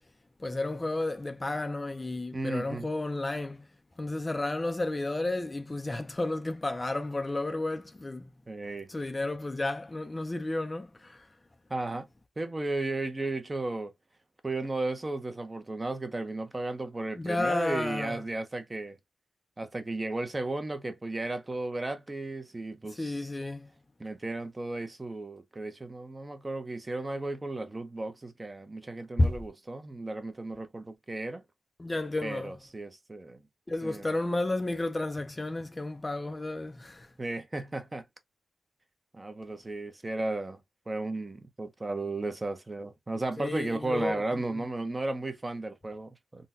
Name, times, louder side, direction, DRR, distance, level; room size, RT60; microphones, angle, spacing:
voice 1, 0.4-3.7 4.0-8.3 8.9-11.3 17.2-18.2 23.0-23.7 29.2-29.3 31.8-32.5 33.7-37.1 43.4-44.4, left 2 dB, 25° left, 0.4 m, -32 dB
voice 2, 2.3-2.9 8.5-8.9 11.7-12.1 12.4-13.9 14.4-19.0 19.6-23.3 24.0-31.4 32.2-33.4 33.8-34.1 37.2-38.1 39.1-40.6 40.9-46.5, right 2 dB, 25° right, 0.6 m, -34 dB
3.8 x 2.2 x 2.5 m
wide cardioid pair, 100°, 0 cm